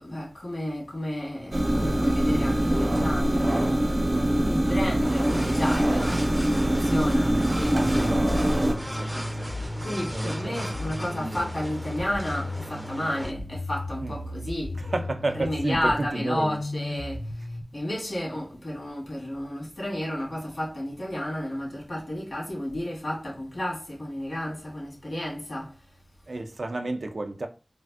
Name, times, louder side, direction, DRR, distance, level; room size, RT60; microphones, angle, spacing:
voice 1, 0.0-6.2 6.6-8.1 9.1-9.2 9.8-14.9 15.3-26.0, left 1 dB, 80° left, 1.6 m, -32 dB
sound 1, 1.5-8.7, right 1 dB, 55° right, 0.7 m, -23 dB
sound 2, 5.0-13.3, equal, 10° right, 0.3 m, -36 dB
sound 3, 7.6-17.6, left 1 dB, 60° left, 0.4 m, -35 dB
voice 2, 7.7-8.4 8.9-9.1 9.4-9.5 10.1-10.5 14.0-14.2 14.8-16.6 26.3-27.5, right 2 dB, 90° right, 0.3 m, -31 dB
3.2 x 2.5 x 2.3 m
wide cardioid pair, 60°, 0 cm